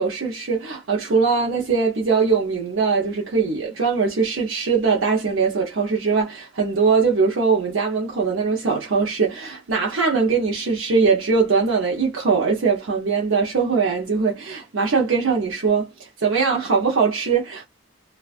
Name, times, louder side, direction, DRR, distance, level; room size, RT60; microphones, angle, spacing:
voice 1, 0.0-17.7, right 5 dB, 80° right, 0.6 m, -21 dB
2.4 x 2.3 x 2.3 m
head